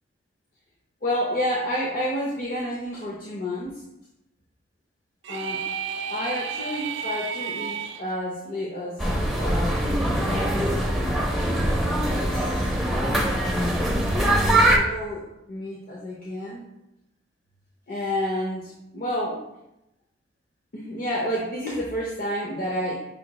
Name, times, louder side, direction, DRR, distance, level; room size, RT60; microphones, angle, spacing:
voice 1, 1.0-3.8 5.3-5.6 6.1-10.6 11.1-11.3 11.8-12.7 13.3-13.8 14.5-16.6 17.9-19.4 20.7-23.1, equal, 45° left, -5 dB, 0.7 m, -30 dB
sound 1, 5.2-8.0, right 7 dB, 80° right, 0.4 m, -32 dB
sound 2, 9.0-14.8, right 1 dB, ahead, 0.5 m, -23 dB
5.7 x 2.3 x 4.0 m, 0.88 s
head